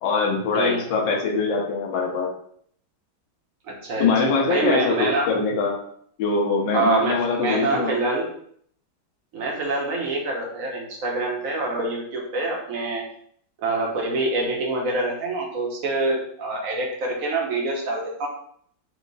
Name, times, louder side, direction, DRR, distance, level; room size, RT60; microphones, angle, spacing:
voice 1, 0.0-2.3 4.0-5.7 6.2-7.9, left 4 dB, 70° left, -1 dB, 1.5 m, -23 dB
voice 2, 3.7-5.3 6.7-8.3 9.3-13.0 13.6-18.3, right 2 dB, 55° right, -1 dB, 1.0 m, -26 dB
4.6 x 2.1 x 3.9 m, 0.64 s
omnidirectional pair, 2.2 m